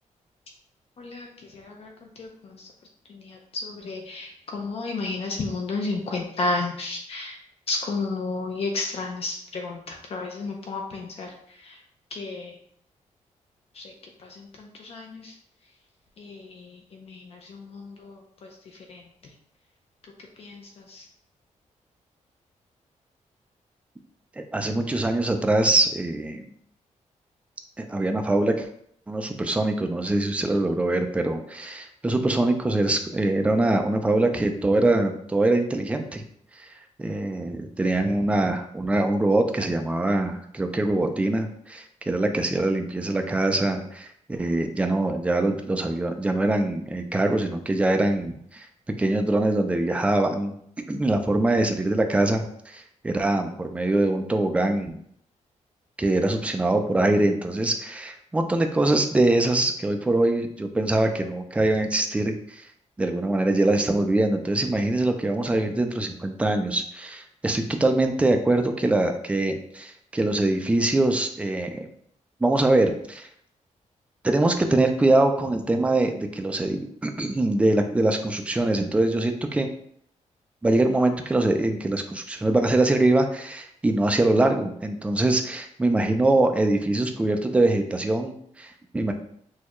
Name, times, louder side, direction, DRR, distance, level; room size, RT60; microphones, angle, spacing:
voice 1, 1.0-1.3 1.5-1.9 2.2-2.5 3.1-7.3 7.7-11.3 11.7-11.8 12.1-12.5 13.8-13.9 14.4-15.3 16.2-18.5 18.9-19.0 20.4-20.6 20.9-21.0, left 3 dB, 50° left, 1 dB, 0.6 m, -32 dB
voice 2, 24.4-26.5 27.8-28.7 29.1-36.2 36.6-36.7 37.0-48.7 49.0-50.5 50.9-55.0 56.0-62.6 63.0-71.9 72.4-73.3 74.2-79.7 80.6-89.1, right 2 dB, 10° right, 5 dB, 0.3 m, -23 dB
6.3 x 2.3 x 3.0 m, 0.67 s
wide cardioid pair, 175°, 13 cm